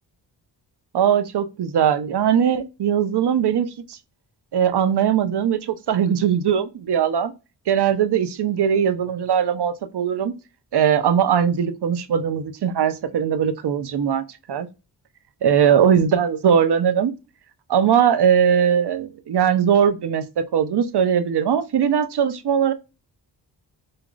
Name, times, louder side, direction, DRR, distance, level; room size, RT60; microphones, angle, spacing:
voice 1, 0.9-4.0 4.5-7.3 7.7-10.3 10.7-14.7 15.4-17.1 17.7-22.7, right 8 dB, 65° right, 0.8 m, -20 dB
5.2 x 2.8 x 2.4 m
cardioid pair, 55°, 43 cm